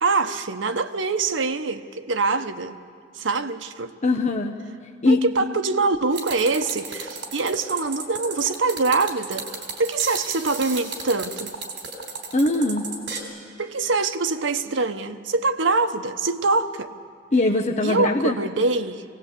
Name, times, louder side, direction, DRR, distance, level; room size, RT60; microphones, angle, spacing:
voice 1, 0.0-2.8 3.1-3.9 5.1-9.5 9.8-11.6 13.6-16.9 17.8-19.0, right 3 dB, 85° right, 7 dB, 1.0 m, -24 dB
voice 2, 4.0-4.6 5.0-5.2 12.3-12.9 17.3-18.4, left 2 dB, 40° left, 2 dB, 0.9 m, -21 dB
sound 1, 6.1-13.2, right 4 dB, 65° right, 3.9 m, -34 dB
23.5 x 18.0 x 8.3 m, 2.1 s
head